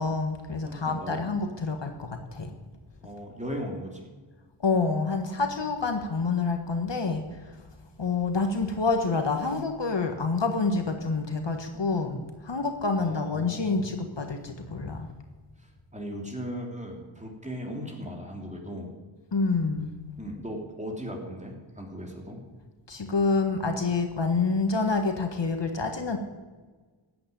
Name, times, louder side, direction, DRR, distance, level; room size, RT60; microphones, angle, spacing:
voice 1, 0.0-2.5 4.6-7.6 8.0-15.1 19.3-19.9 22.9-26.2, left 4 dB, 60° left, 5 dB, 1.5 m, -27 dB
voice 2, 0.7-1.3 3.0-4.1 12.9-13.9 15.6-18.9 20.2-22.4, equal, 15° right, 0 dB, 3.3 m, -37 dB
14.0 x 8.7 x 9.2 m, 1.4 s
wide cardioid pair, 60°, 50 cm